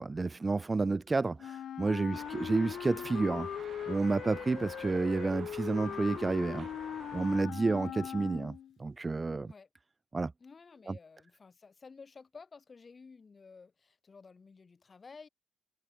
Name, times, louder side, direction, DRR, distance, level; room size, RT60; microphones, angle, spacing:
voice 1, 0.0-3.5 3.9-6.7 7.1-9.5 10.1-10.3 10.9-11.0, right 3 dB, 25° right, 0.4 m, -30 dB
Wind instrument woodwind instrument, 1.4-8.7, left 10 dB, 65° left, 0.8 m, -40 dB
sound 1, 2.1-7.4, right 7 dB, 50° right, 3.3 m, -50 dB
voice 2, 10.4-15.3, left 4 dB, 35° left, 7.5 m, -53 dB
cardioid pair, 90°, 0 cm